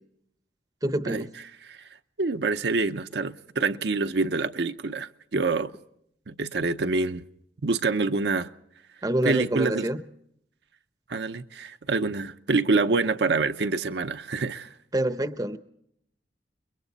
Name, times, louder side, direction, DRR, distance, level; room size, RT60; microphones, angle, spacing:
voice 1, 0.8-1.3 9.0-10.0 14.9-15.6, right 1 dB, 20° right, 0.7 m, -26 dB
voice 2, 2.2-5.7 6.3-7.2 7.6-8.5 9.2-9.9 11.1-14.7, right 3 dB, 65° right, 0.7 m, -26 dB
30.0 x 22.0 x 4.1 m
head